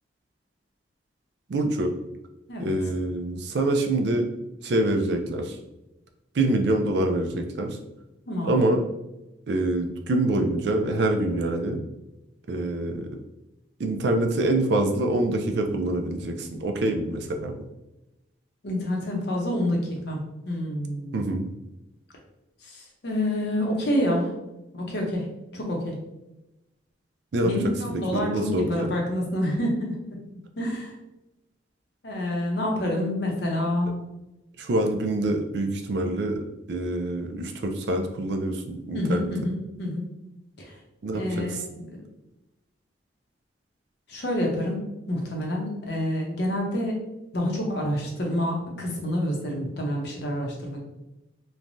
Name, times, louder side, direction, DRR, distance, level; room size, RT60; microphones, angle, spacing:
voice 1, 1.5-1.9 2.6-4.3 4.6-5.6 6.3-7.8 8.4-8.8 9.5-11.8 12.5-13.1 13.8-17.6 21.1-21.5 27.3-27.5 27.9-28.9 34.6-36.4 36.7-39.3 41.0-41.6, right 2 dB, 65° right, 4 dB, 0.4 m, -25 dB
voice 2, 8.3-8.7 18.6-20.2 20.5-21.2 22.6-24.3 24.7-25.9 27.4-30.0 30.6-30.9 32.0-34.0 38.9-40.1 40.6-40.7 41.1-41.9 44.1-47.0 47.3-50.8, left 1 dB, 60° left, 0 dB, 0.7 m, -28 dB
3.2 x 2.2 x 2.6 m, 0.94 s
head